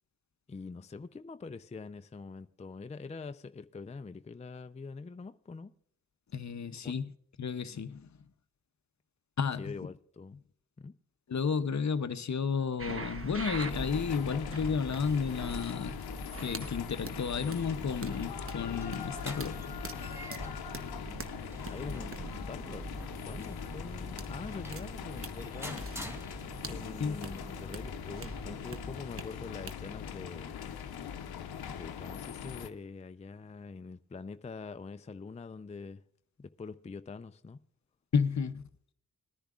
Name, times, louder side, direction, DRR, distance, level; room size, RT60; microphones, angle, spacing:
voice 1, 0.5-5.7 6.8-6.9 9.6-10.4 10.8-10.9 21.6-22.9 23.2-25.8 26.6-30.6 31.7-36.0 36.4-37.6, left 4 dB, 20° left, 0.5 m, -44 dB
voice 2, 6.3-7.1 7.4-8.1 9.4-9.7 11.3-15.9 16.4-19.6 27.0-27.2 38.1-38.6, left 6 dB, 50° left, 0.7 m, -32 dB
sound 1, 12.8-29.2 29.7-29.8, right 3 dB, 35° right, 1.1 m, -43 dB
sound 2, 13.7-32.7, left 8 dB, 90° left, 0.7 m, -42 dB
sound 3, 18.8-26.9, equal, 5° right, 1.5 m, -49 dB
20.0 x 10.0 x 2.4 m
cardioid pair, 45°, 36 cm